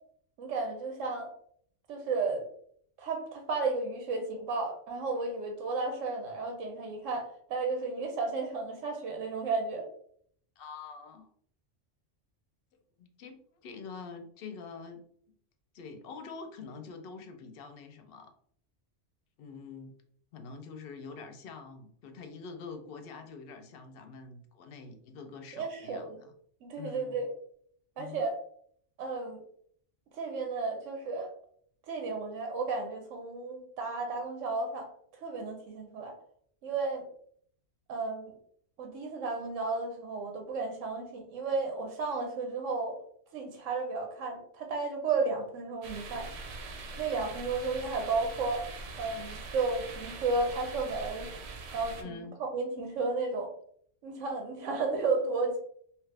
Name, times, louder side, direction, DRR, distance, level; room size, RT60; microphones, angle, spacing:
voice 1, 0.4-1.3 1.9-2.4 3.0-9.9 25.5-26.2 26.6-27.3 28.0-28.4 29.0-29.4 30.2-31.3 31.9-34.9 35.2-36.1 36.6-37.0 37.9-38.4 38.8-42.9 43.3-46.3 47.0-48.6 49.0-51.3 51.7-52.2 52.5-53.5 54.0-55.6, right 3 dB, 90° right, 3 dB, 1.0 m, -33 dB
voice 2, 10.6-11.3 13.0-15.0 15.7-18.3 19.4-19.9 20.3-26.3 26.8-27.2 28.0-28.2 52.0-52.4, left 5 dB, 60° left, 6 dB, 0.7 m, -45 dB
sound 1, 45.8-52.0, right 3 dB, 65° right, 0.8 m, -43 dB
2.9 x 2.4 x 3.2 m, 0.62 s
omnidirectional pair, 1.3 m